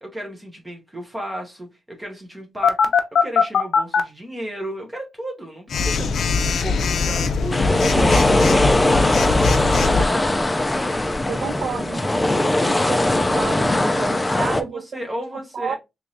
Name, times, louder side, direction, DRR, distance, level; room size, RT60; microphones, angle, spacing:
voice 1, 0.0-8.4 8.9-9.2 9.8-10.5 14.2-15.8, right 1 dB, 15° right, 0.9 m, -33 dB
Telephone, 2.6-4.0 5.7-10.1, left 5 dB, 80° left, 0.4 m, -20 dB
sound 1, 7.5-14.6, left 1 dB, 15° left, 0.3 m, -20 dB
voice 2, 11.3-14.8 15.5-15.8, right 6 dB, 65° right, 0.4 m, -31 dB
3.5 x 3.0 x 2.6 m
wide cardioid pair, 175°, 0 cm